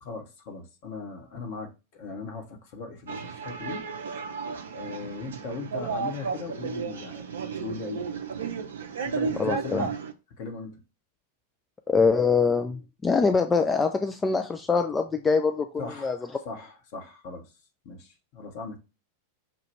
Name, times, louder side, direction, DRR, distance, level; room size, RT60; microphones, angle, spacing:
voice 1, 0.0-3.9 4.7-7.3 7.6-8.0 9.0-9.9 10.3-10.8 15.8-17.5 17.8-18.8, left 4 dB, 45° left, 1.2 m, -38 dB
sound 1, 3.1-10.1, right 5 dB, 65° right, 0.6 m, -33 dB
voice 2, 9.4-9.9 11.9-16.2, left 4 dB, 15° left, 0.4 m, -24 dB
5.9 x 2.4 x 3.2 m
figure-of-eight pair, 90°, 0 cm